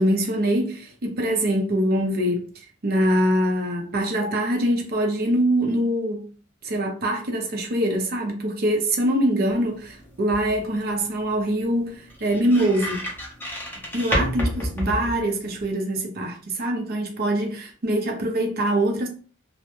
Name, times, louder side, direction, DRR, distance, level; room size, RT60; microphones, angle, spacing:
voice 1, 0.0-2.5 2.8-6.2 6.6-13.0 13.9-19.1, right 1 dB, 45° right, 0.6 m, -23 dB
sound 1, 9.5-15.7, equal, 10° left, 0.6 m, -31 dB
2.2 x 2.1 x 2.9 m
head